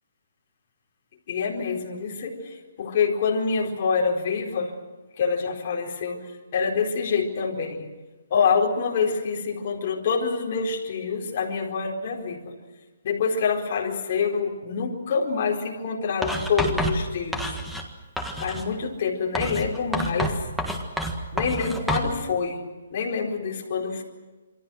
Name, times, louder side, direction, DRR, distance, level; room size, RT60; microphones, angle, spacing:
voice 1, 1.3-4.7 5.2-6.2 6.5-7.9 8.3-12.5 13.0-17.5 18.4-20.4 21.3-22.6 22.9-24.0, left 5 dB, 35° left, -1 dB, 4.4 m, -26 dB
Writing, 16.2-17.9 18.2-18.7 19.3-22.1, right 1 dB, ahead, 1.6 m, -28 dB
28.0 x 24.5 x 6.4 m, 1.2 s
hypercardioid pair, 175°, 0 cm